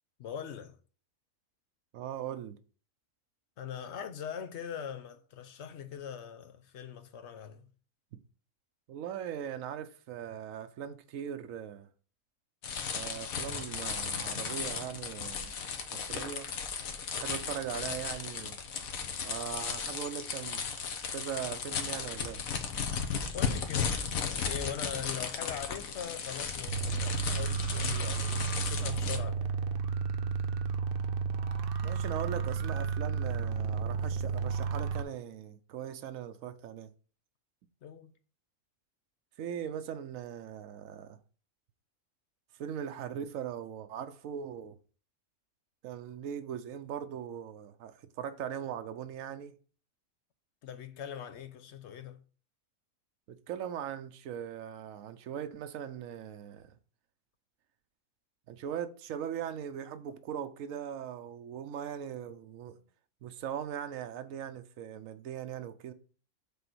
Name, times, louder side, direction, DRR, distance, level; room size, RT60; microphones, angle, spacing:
voice 1, 0.2-0.8 3.6-7.7 23.3-29.5 37.8-38.1 50.6-52.2 62.7-62.9, left 8 dB, 60° left, 1.0 m, -42 dB
voice 2, 1.9-2.6 8.9-11.9 12.8-15.5 15.9-16.5 17.1-18.6 19.2-20.6 21.1-22.4 31.8-36.9 39.4-41.2 42.6-44.8 45.8-49.6 53.3-56.7 58.5-62.8 63.2-65.9, right 9 dB, 80° right, 1.1 m, -40 dB
sound 1, 12.6-29.2, left 6 dB, 85° left, 1.4 m, -35 dB
sound 2, 26.7-35.0, right 6 dB, 55° right, 0.8 m, -32 dB
6.9 x 3.9 x 6.1 m
omnidirectional pair, 1.4 m